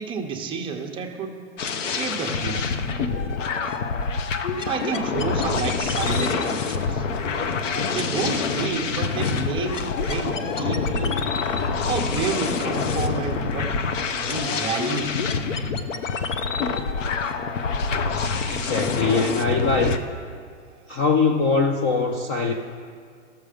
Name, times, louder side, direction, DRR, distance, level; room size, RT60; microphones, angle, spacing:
voice 1, 0.0-1.4 1.8-2.7 4.7-7.1 7.9-11.2 11.8-13.7 14.1-15.3, right 5 dB, 15° right, 2 dB, 0.7 m, -30 dB
sound 1, 1.6-20.0, left 5 dB, 90° left, 0.8 m, -26 dB
voice 2, 18.3-20.0 20.9-22.5, left 4 dB, 25° left, 3 dB, 0.3 m, -22 dB
13.0 x 6.8 x 5.0 m, 2.1 s
hypercardioid pair, 145°, 37 cm